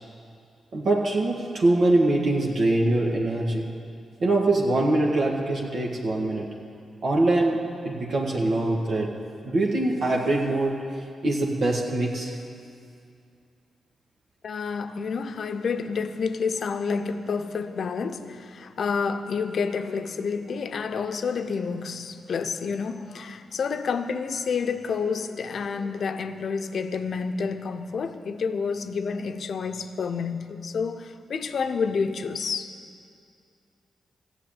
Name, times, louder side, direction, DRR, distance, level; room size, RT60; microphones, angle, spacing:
voice 1, 0.7-3.7 4.2-6.6 7.0-10.8 11.2-12.4, right 2 dB, 65° right, 1.6 m, -23 dB
voice 2, 14.4-32.7, left 5 dB, 65° left, 0.7 m, -29 dB
14.5 x 7.0 x 9.0 m
supercardioid pair, 45°, 0 cm